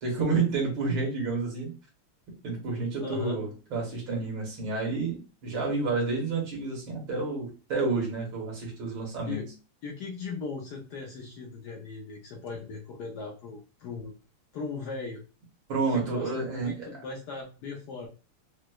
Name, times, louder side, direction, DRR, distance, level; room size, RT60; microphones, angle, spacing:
voice 1, 0.0-1.7 2.4-9.4 15.7-16.9, right 4 dB, 65° right, -1 dB, 1.8 m, -30 dB
voice 2, 3.0-3.4 9.2-9.5 9.8-14.1 14.5-15.2 15.9-18.1, left 4 dB, 80° left, 0 dB, 0.9 m, -38 dB
4.7 x 2.0 x 2.2 m, 0.33 s
omnidirectional pair, 2.4 m